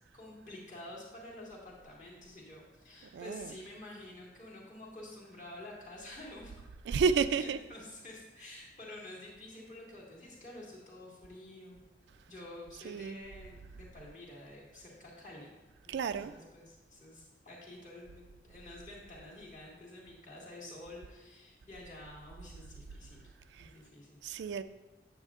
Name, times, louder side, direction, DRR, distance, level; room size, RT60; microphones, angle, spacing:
voice 1, 0.1-6.6 7.0-11.8 12.3-15.5 15.8-23.3 23.6-24.2, left 1 dB, 45° left, 2.0 m, -49 dB
voice 2, 3.1-3.6 6.8-7.6 12.7-13.2 15.9-16.3 23.5-23.7 24.2-24.6, right 5 dB, 80° right, 0.3 m, -31 dB
9.0 x 7.2 x 2.4 m
head